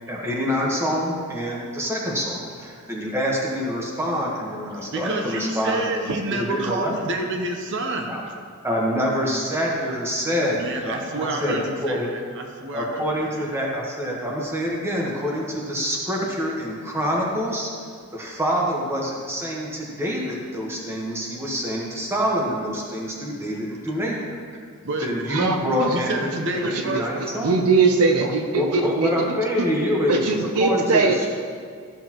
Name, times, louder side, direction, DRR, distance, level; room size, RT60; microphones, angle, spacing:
voice 1, 0.1-5.8 6.3-6.9 8.1-8.2 8.6-10.6 10.9-12.1 12.7-17.7 18.1-24.4 25.0-26.2 26.7-27.6 28.5-31.3, equal, 10° right, -2 dB, 1.2 m, -26 dB
voice 2, 4.7-8.3 10.5-13.0 13.3-13.6 24.8-25.0 25.9-27.3, right 2 dB, 60° right, 3 dB, 0.8 m, -29 dB
voice 3, 25.3-25.9 26.9-27.0 27.4-29.4 30.1-31.1, right 4 dB, 85° right, 4 dB, 0.7 m, -21 dB
13.0 x 6.5 x 3.0 m, 2.1 s
head